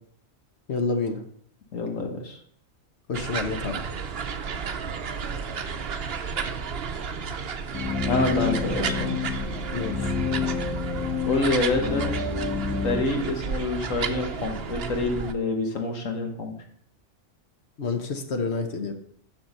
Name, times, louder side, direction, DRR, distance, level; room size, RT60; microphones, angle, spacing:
voice 1, 0.7-1.2 3.1-3.8 9.7-10.1 17.8-18.9, left 4 dB, 60° left, 6 dB, 1.3 m, -28 dB
voice 2, 1.7-2.4 8.1-9.1 11.3-12.1 12.8-16.5, left 2 dB, 80° left, 3 dB, 1.7 m, -27 dB
sound 1, 3.1-15.3, right 6 dB, 55° right, 0.9 m, -32 dB
sound 2, 7.7-13.0, left 5 dB, 10° left, 1.2 m, -29 dB
12.0 x 4.6 x 5.4 m, 0.65 s
omnidirectional pair, 1.3 m